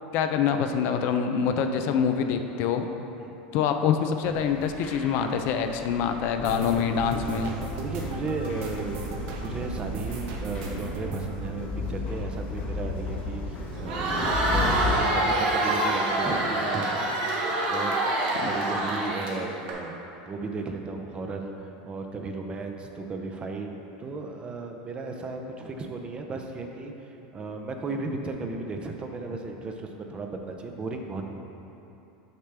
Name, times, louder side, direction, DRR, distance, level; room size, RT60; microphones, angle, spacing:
voice 1, 0.1-2.9 3.5-7.5 18.4-18.5, left 7 dB, 50° left, 6 dB, 0.4 m, -25 dB
sound 1, 4.2-14.9, left 3 dB, 35° left, 0.9 m, -36 dB
sound 2, 6.3-13.2 13.4-14.5 14.8-15.1 15.4-15.6, right 2 dB, 55° right, 0.7 m, -35 dB
voice 2, 7.8-17.2 17.7-18.0 18.4-21.5 21.8-23.7 24.0-31.2, right 3 dB, 25° right, 3 dB, 0.5 m, -35 dB
Crowd, 13.7-19.7, right 2 dB, 75° right, 1.3 m, -26 dB
6.6 x 5.7 x 3.3 m, 2.9 s
supercardioid pair, 135°, 4 cm